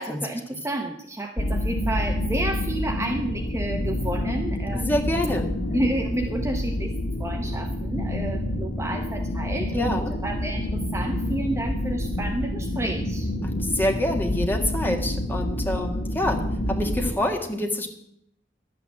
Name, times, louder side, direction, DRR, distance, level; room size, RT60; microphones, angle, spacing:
voice 1, 0.0-4.9 5.7-6.9 7.2-13.3, right 1 dB, 15° right, 4 dB, 0.8 m, -30 dB
sound 1, 1.4-17.1, left 1 dB, 75° left, 1.6 m, -28 dB
voice 2, 4.7-5.5 9.7-10.1 13.4-17.9, left 1 dB, 10° left, 2 dB, 1.7 m, -26 dB
11.5 x 8.7 x 7.3 m, 0.74 s
head